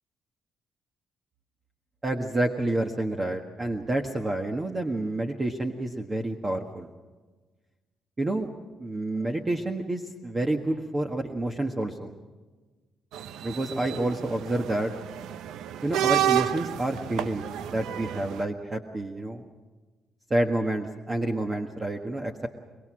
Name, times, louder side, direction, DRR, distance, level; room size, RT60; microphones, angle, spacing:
voice 1, 2.0-6.9 8.2-8.5 8.8-12.1 13.4-14.9 15.8-19.4 20.3-22.5, right 1 dB, 25° right, 3 dB, 1.5 m, -29 dB
sound 1, 13.1-18.4, right 11 dB, 85° right, 0.7 m, -30 dB
23.5 x 22.5 x 6.3 m, 1.3 s
cardioid pair, 90°, 0 cm